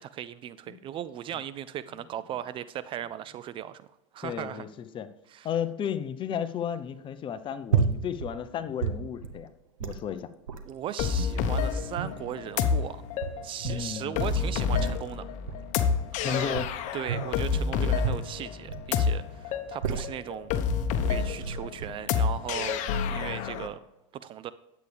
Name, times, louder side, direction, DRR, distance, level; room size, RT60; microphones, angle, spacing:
voice 1, 0.0-3.8 4.1-4.6 5.3-5.5 10.6-13.0 13.4-15.3 16.1-16.6 16.9-20.5 21.0-22.8 23.1-23.8 24.1-24.5, right 10 dB, 30° right, 15 dB, 0.4 m, -37 dB
voice 2, 4.2-5.1 5.4-9.5 9.8-10.3 13.6-14.2 16.2-16.7 17.8-18.1, left 8 dB, 30° left, 11 dB, 0.7 m, -33 dB
sound 1, 7.7-8.3 8.6-9.4 9.8-10.0 10.5-10.7 11.4-12.4 13.0-13.9 14.3-15.1 15.5-15.8 16.5-17.4 18.0-18.9 19.5-20.3 21.0-21.1 21.4-21.9, right 6 dB, 90° right, 1.0 m, -31 dB
sound 2, 11.0-23.7, left 6 dB, 45° left, 1.0 m, -29 dB
10.5 x 8.3 x 3.4 m, 0.95 s
hypercardioid pair, 110°, 17 cm